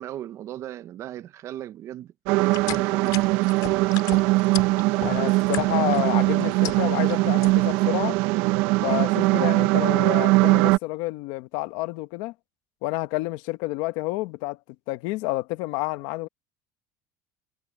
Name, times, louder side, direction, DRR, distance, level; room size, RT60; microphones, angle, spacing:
voice 1, 0.0-3.2, right 12 dB, 35° right, 0.6 m, -37 dB
sound 1, 2.3-10.8, right 21 dB, 70° right, 0.8 m, -21 dB
sound 2, 2.4-6.0 6.4-7.1 7.4-7.8, left 16 dB, 50° left, 2.6 m, -35 dB
voice 2, 5.0-8.2 8.8-12.3 12.8-14.6 14.9-16.3, left 20 dB, 65° left, 1.1 m, -29 dB
cardioid pair, 180°, 9 cm